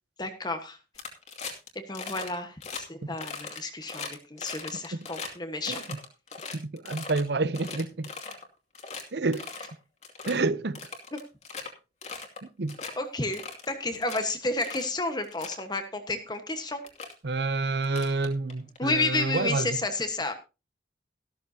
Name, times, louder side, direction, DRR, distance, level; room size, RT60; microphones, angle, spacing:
voice 1, 0.2-0.8 1.7-5.8 13.0-16.8 18.8-20.3, left 2 dB, 25° left, 1.3 m, -31 dB
sound 1, 0.9-1.7 1.9-2.3 2.6-2.8 3.2-5.3 5.6-7.2 7.5-8.4 8.7-9.0 9.3-9.7 10.0-10.3 10.7-11.7 12.0-12.4 12.7-12.9 13.3-14.2 14.6-14.9 15.2-15.6 16.4-16.5 16.8-17.1 17.8-18.8, left 4 dB, 40° left, 2.5 m, -39 dB
voice 2, 5.7-6.0 6.5-8.1 9.1-9.4 10.3-10.8 12.4-12.8 17.2-19.8, right 3 dB, 70° right, 0.7 m, -28 dB
14.0 x 13.0 x 2.8 m
head